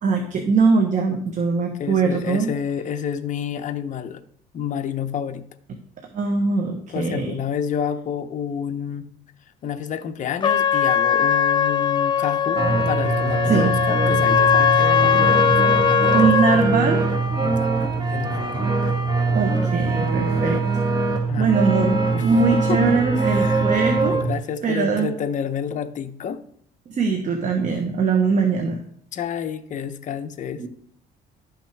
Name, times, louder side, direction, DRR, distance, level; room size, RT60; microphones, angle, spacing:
voice 1, 0.0-2.5 6.0-7.3 13.5-13.7 16.1-17.0 19.3-20.6 21.4-24.2 24.6-25.1 26.9-28.8 30.6-30.7, right 4 dB, 45° right, 5 dB, 1.1 m, -21 dB
voice 2, 1.8-4.2 4.5-5.5 6.9-9.1 9.6-16.6 17.4-18.6 21.3-21.6 22.1-26.4 29.1-30.6, left 8 dB, 50° left, 8 dB, 0.8 m, -30 dB
Trumpet, 10.4-16.6, left 8 dB, 30° left, 0.4 m, -20 dB
sound 1, 12.6-24.4, right 3 dB, 25° right, 1.3 m, -22 dB
11.5 x 5.8 x 3.4 m, 0.65 s
cardioid pair, 110°, 17 cm